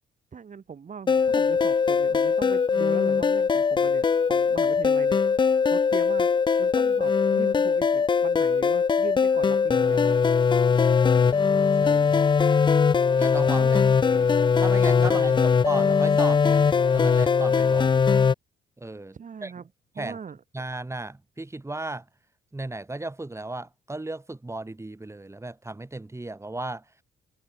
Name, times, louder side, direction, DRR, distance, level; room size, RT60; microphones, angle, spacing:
voice 1, 0.3-6.3 6.6-10.2 13.6-13.8 15.0-15.4 19.1-19.7 20.0-20.4, right 6 dB, 40° right, 1.9 m, -40 dB
sound 1, 1.1-18.3, left 5 dB, 25° left, 0.4 m, -21 dB
voice 2, 11.1-12.2 13.2-14.3 14.6-15.3 15.6-18.0 18.8-19.7 20.0-20.2 20.5-22.1 22.5-26.8, right 2 dB, 15° right, 3.8 m, -35 dB
cardioid pair, 90°, 20 cm